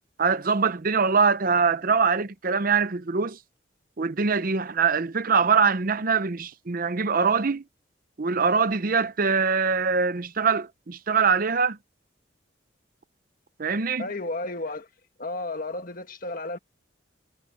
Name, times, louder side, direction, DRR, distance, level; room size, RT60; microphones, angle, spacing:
voice 1, 0.2-3.4 4.0-7.6 8.2-11.8 13.6-14.1, right 5 dB, 45° right, 0.7 m, -23 dB
voice 2, 14.0-14.9 15.2-16.6, left 2 dB, 45° left, 1.8 m, -32 dB
head